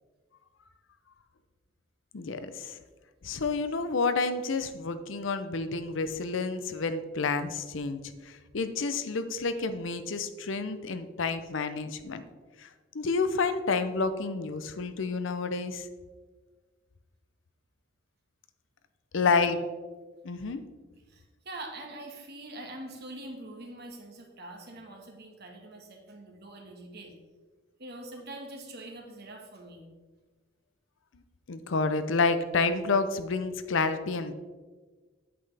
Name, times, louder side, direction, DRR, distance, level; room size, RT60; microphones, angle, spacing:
voice 1, 2.1-2.8 3.2-12.2 12.6-12.7 12.9-15.9 19.1-19.6 20.2-20.6 31.5-34.3, left 4 dB, 65° left, 10 dB, 0.6 m, -29 dB
voice 2, 21.1-27.1 27.8-29.9, right 1 dB, 55° right, 2 dB, 1.6 m, -44 dB
8.7 x 7.8 x 3.4 m, 1.4 s
head